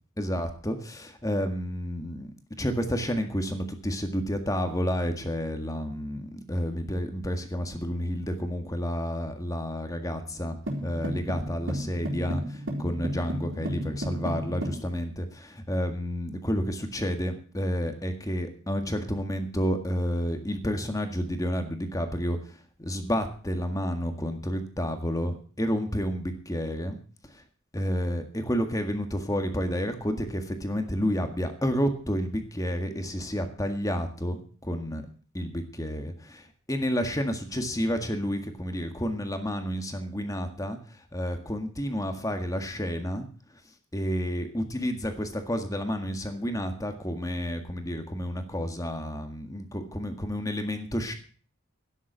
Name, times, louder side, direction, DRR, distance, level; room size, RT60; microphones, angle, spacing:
voice 1, 0.2-2.3 2.6-10.6 10.8-27.0 27.3-27.4 27.7-35.0 35.3-43.3 43.9-51.1, equal, 15° left, 6 dB, 1.8 m, -30 dB
sound 1, 10.7-14.8, equal, 65° right, 4.1 m, -33 dB
12.5 x 10.0 x 6.1 m, 0.42 s
head